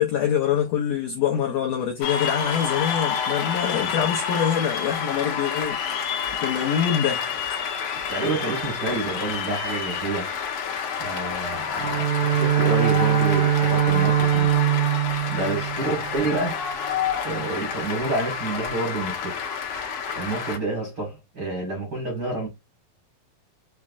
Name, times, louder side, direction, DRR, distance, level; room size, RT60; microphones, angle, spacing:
voice 1, 0.0-7.6, left 9 dB, 85° left, 1.5 m, -25 dB
Cheering / Applause, 2.0-20.6, left 7 dB, 65° left, 1.8 m, -29 dB
voice 2, 8.1-10.3 11.0-14.5 15.3-16.6 17.2-19.7 20.1-22.5, right 2 dB, 45° right, 1.5 m, -29 dB
Bowed string instrument, 11.8-16.4, right 12 dB, 75° right, 2.1 m, -22 dB
5.7 x 3.1 x 2.4 m
omnidirectional pair, 3.9 m